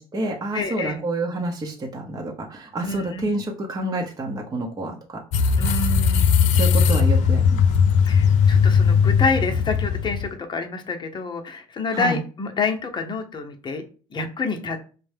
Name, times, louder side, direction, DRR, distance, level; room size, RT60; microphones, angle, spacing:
voice 1, 0.0-5.2 6.5-7.7 11.9-12.2, right 2 dB, 25° right, 0 dB, 0.8 m, -28 dB
voice 2, 0.5-1.0 2.8-3.3 5.6-6.7 8.0-13.8 14.1-14.8, left 4 dB, 35° left, 4 dB, 0.8 m, -28 dB
sound 1, 5.3-10.3, left 6 dB, 65° left, 0.4 m, -18 dB
5.2 x 2.2 x 3.4 m, 0.38 s
supercardioid pair, 80°, 14 cm